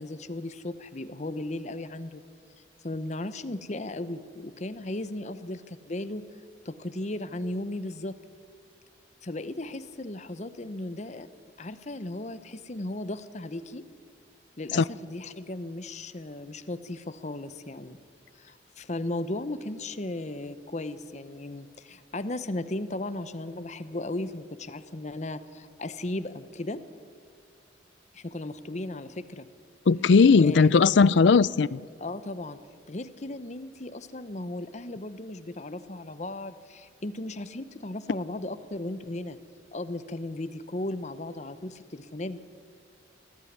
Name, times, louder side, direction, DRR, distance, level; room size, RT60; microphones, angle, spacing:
voice 1, 0.0-2.2 2.8-6.2 6.6-8.1 9.2-11.3 11.6-13.8 14.6-18.0 18.4-26.8 28.1-29.5 30.4-31.1 32.0-32.6 32.9-39.4 39.7-42.4, left 2 dB, 40° left, 0.9 m, -36 dB
voice 2, 29.9-31.8, left 5 dB, 75° left, 0.4 m, -18 dB
20.0 x 14.5 x 9.6 m
head